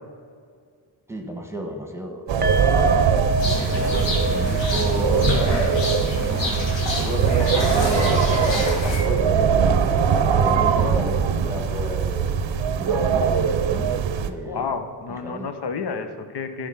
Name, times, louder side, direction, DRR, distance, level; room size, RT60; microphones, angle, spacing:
voice 1, 1.1-2.9 3.4-12.3 12.8-14.6 15.1-15.5, left 1 dB, 5° right, 3 dB, 1.3 m, -32 dB
sound 1, 2.3-14.3, right 7 dB, 85° right, 0.7 m, -21 dB
sound 2, 2.4-9.6 9.9-10.1 10.4-10.5, equal, 20° right, 0.6 m, -31 dB
sound 3, 3.4-9.0, left 2 dB, 80° left, 2.0 m, -27 dB
voice 2, 14.4-16.7, left 5 dB, 65° left, 8 dB, 1.0 m, -30 dB
12.0 x 5.0 x 5.8 m, 2.1 s
cardioid pair, 80°, 44 cm